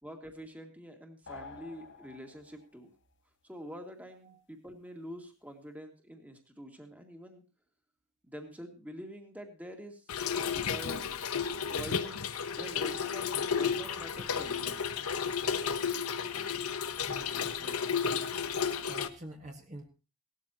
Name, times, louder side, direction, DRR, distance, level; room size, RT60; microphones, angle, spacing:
voice 1, 0.0-2.9 3.4-7.4 8.2-10.1 10.7-11.1 11.7-12.2 12.5-14.9, equal, 5° right, 3 dB, 2.1 m, -46 dB
sound 1, 1.3-2.8, left 4 dB, 55° left, 1.1 m, -49 dB
Trickle dribble / Fill (with liquid), 10.1-19.1, left 6 dB, 80° left, 1.0 m, -33 dB
voice 2, 17.0-18.0 18.3-18.4 18.9-19.9, right 1 dB, 35° right, 2 dB, 1.8 m, -47 dB
18.0 x 13.0 x 3.0 m, 0.34 s
head